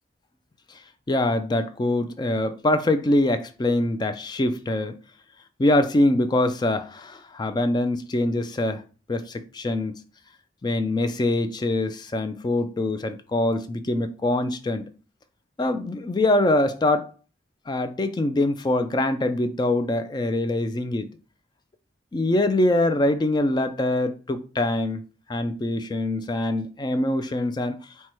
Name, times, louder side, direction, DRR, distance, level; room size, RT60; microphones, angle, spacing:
voice 1, 1.1-5.0 5.6-8.8 9.1-9.9 10.6-14.8 15.6-17.1 17.7-21.1 22.1-25.0 25.3-27.8, left 1 dB, 20° left, 0.3 m, -24 dB
4.6 x 2.2 x 4.3 m
head